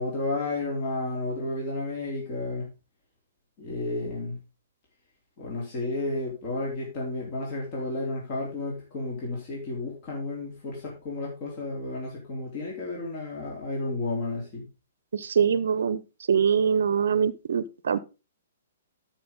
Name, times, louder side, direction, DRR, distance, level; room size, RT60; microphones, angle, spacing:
voice 1, 0.0-2.7 3.6-4.4 5.4-14.7, left 2 dB, 40° left, -3 dB, 3.7 m, -32 dB
voice 2, 15.1-16.0 16.3-18.0, right 7 dB, 65° right, 17 dB, 0.7 m, -23 dB
12.5 x 6.0 x 3.8 m, 0.29 s
figure-of-eight pair, 120°, 0 cm